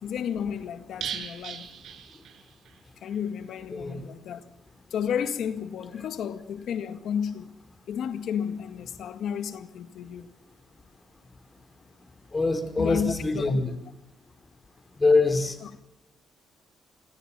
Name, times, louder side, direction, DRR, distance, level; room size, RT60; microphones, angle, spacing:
voice 1, 0.0-1.8 3.0-4.4 4.9-7.5 7.9-10.3 12.8-13.6 15.6-15.7, left 8 dB, 70° left, 1.9 m, -32 dB
sound 1, 1.0-2.8 3.1-3.2 3.5-3.6, right 8 dB, 70° right, 6.8 m, -38 dB
voice 2, 3.7-4.0 12.3-13.7 14.9-15.6, left 3 dB, 25° left, 5.1 m, -24 dB
27.5 x 22.5 x 7.6 m
cardioid pair, 90°, 0 cm